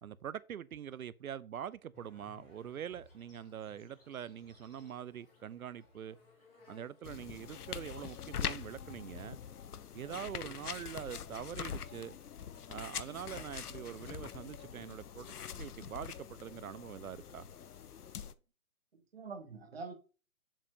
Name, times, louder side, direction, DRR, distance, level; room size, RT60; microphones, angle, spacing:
voice 1, 0.0-6.2 6.7-9.4 9.9-12.1 12.7-17.5, right 9 dB, 70° right, 0.6 m, -44 dB
sound 1, 1.9-6.9, left 3 dB, 10° left, 3.1 m, -64 dB
Insect, 2.5-10.1, left 4 dB, 40° left, 2.9 m, -68 dB
sound 2, 7.0-18.3, left 8 dB, 85° left, 0.8 m, -44 dB
voice 2, 18.9-19.9, right 4 dB, 40° right, 1.5 m, -46 dB
7.3 x 7.2 x 2.8 m
hypercardioid pair, 170°, 45 cm